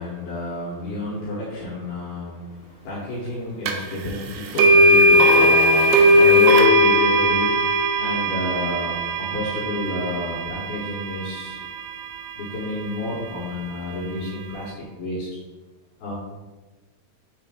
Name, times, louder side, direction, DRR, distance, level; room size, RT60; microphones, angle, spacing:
voice 1, 0.0-11.6 12.4-15.3 16.0-16.1, left 2 dB, 75° left, -6 dB, 2.3 m, -30 dB
sound 1, 3.7-3.8 4.6-12.6, equal, 85° right, 2.6 m, -18 dB
9.4 x 3.3 x 3.6 m, 1.2 s
omnidirectional pair, 6.0 m